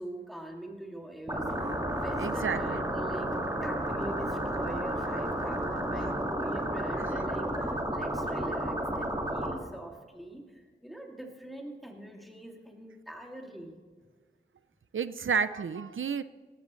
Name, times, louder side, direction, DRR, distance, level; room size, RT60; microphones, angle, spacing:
voice 1, 0.0-3.3 3.6-13.7, right 1 dB, ahead, 0 dB, 2.4 m, -43 dB
sound 1, 1.3-9.5, right 1 dB, 20° right, 1.9 m, -32 dB
voice 2, 2.2-2.8 7.0-7.2 14.9-16.2, right 6 dB, 80° right, 13 dB, 0.4 m, -31 dB
17.5 x 14.5 x 3.1 m, 1.5 s
wide cardioid pair, 65°, 20 cm